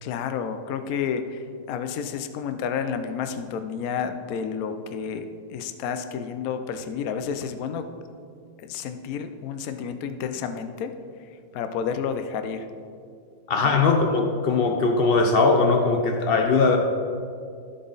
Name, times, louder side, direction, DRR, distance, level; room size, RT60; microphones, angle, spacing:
voice 1, 0.0-7.9 8.6-10.9 11.5-12.7 13.6-13.8, left 7 dB, 65° left, 8 dB, 1.0 m, -30 dB
voice 2, 13.5-16.8, left 4 dB, 80° left, 4 dB, 0.5 m, -20 dB
12.5 x 7.7 x 4.0 m, 2.3 s
omnidirectional pair, 2.0 m